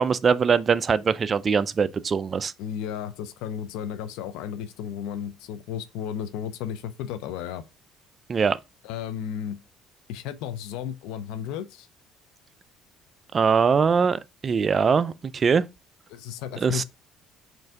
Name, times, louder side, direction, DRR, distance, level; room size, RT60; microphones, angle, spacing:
voice 1, 0.0-2.5 8.3-8.6 13.3-15.6 16.6-16.8, right 6 dB, 35° right, 0.3 m, -22 dB
voice 2, 2.6-7.6 8.8-9.6 10.1-11.9 16.1-16.8, left 9 dB, 85° left, 0.4 m, -33 dB
4.3 x 2.6 x 3.5 m
cardioid pair, 105°, 0 cm